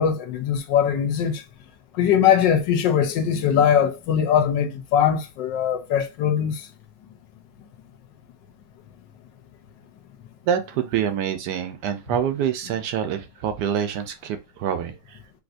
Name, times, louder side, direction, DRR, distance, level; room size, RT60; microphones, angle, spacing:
voice 1, 0.0-1.4 2.0-6.6, left 8 dB, 80° left, 1.3 m, -21 dB
voice 2, 10.5-15.2, right 8 dB, 75° right, 1.1 m, -26 dB
3.4 x 2.7 x 2.5 m
omnidirectional pair, 2.0 m